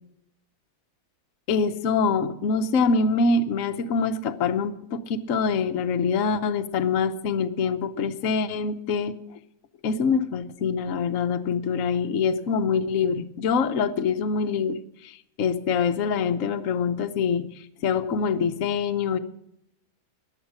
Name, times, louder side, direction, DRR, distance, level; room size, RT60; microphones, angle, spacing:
voice 1, 1.5-9.1 9.8-17.5 17.8-19.2, left 5 dB, 55° left, 7 dB, 1.0 m, -25 dB
14.5 x 10.5 x 6.3 m, 0.76 s
omnidirectional pair, 2.1 m